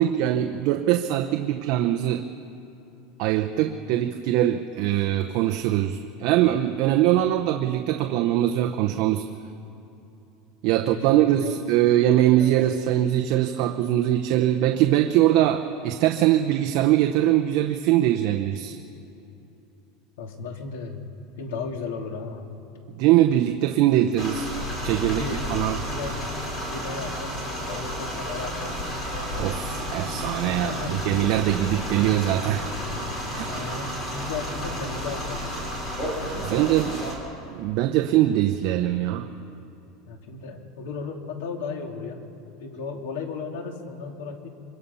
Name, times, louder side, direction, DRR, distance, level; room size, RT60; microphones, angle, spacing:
voice 1, 0.0-2.2 3.2-9.2 10.6-18.8 22.9-24.5 24.8-25.2 25.5-25.8 29.4-32.7 33.3-33.5 36.4-37.0 37.5-39.3, right 13 dB, 50° right, 5 dB, 0.8 m, -22 dB
voice 2, 10.7-11.6 12.4-12.6 20.2-21.1 21.4-22.6 24.9-26.3 26.6-29.0 30.6-31.0 33.5-35.6 36.2-36.4 40.1-42.3 42.6-44.5, left 4 dB, 90° left, 3 dB, 2.6 m, -35 dB
sound 1, 24.2-37.2, equal, 25° left, 3.9 m, -31 dB
25.0 x 23.0 x 5.6 m, 2.9 s
supercardioid pair, 170°, 0 cm